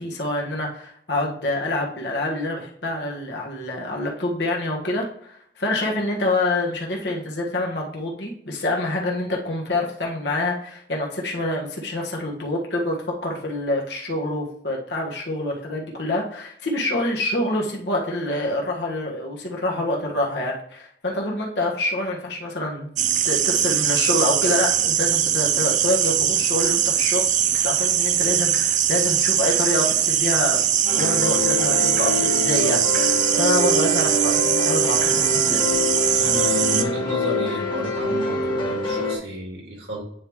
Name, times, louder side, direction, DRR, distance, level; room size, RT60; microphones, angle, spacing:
voice 1, 0.0-22.9 23.2-30.6 30.9-35.7, left 1 dB, 70° left, -1 dB, 1.5 m, -26 dB
sound 1, 23.0-36.8, right 10 dB, 45° right, 0.4 m, -21 dB
sound 2, 30.8-39.2, left 2 dB, 25° left, 1.5 m, -25 dB
voice 2, 36.0-40.0, right 1 dB, 70° right, 0 dB, 2.0 m, -31 dB
9.4 x 3.6 x 3.1 m, 0.65 s
head